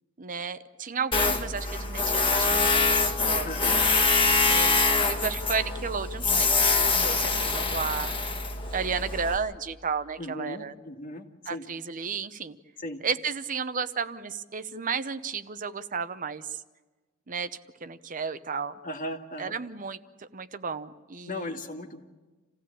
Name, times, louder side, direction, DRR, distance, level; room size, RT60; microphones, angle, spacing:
voice 1, 0.2-3.6 4.4-8.2 8.7-10.8 11.5-12.6 13.0-16.6 17.3-17.5 17.8-18.7 19.4-21.6, right 5 dB, 45° right, 11 dB, 0.8 m, -33 dB
Tools, 1.1-9.4, left 3 dB, 25° left, 1.8 m, -24 dB
voice 2, 3.4-3.8 10.2-11.6 12.8-13.0 18.8-19.5 21.3-22.0, left 1 dB, 45° left, 5 dB, 2.0 m, -37 dB
28.0 x 16.0 x 8.6 m, 1.3 s
head